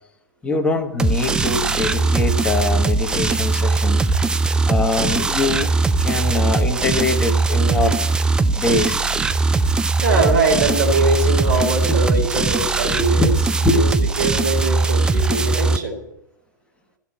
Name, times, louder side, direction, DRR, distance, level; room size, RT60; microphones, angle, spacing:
voice 1, 0.4-4.1 4.7-5.7 6.0-8.0 8.5-9.0 11.8-12.0 13.0-13.3 13.6-14.0, left 2 dB, 10° left, 4 dB, 1.3 m, -23 dB
sound 1, 1.0-15.8, right 3 dB, 10° right, 0.4 m, -20 dB
voice 2, 9.6-13.3 13.6-13.9 14.2-16.0, right 3 dB, 65° right, -1 dB, 3.7 m, -22 dB
13.5 x 5.9 x 8.6 m, 0.85 s
figure-of-eight pair, 105°, 10 cm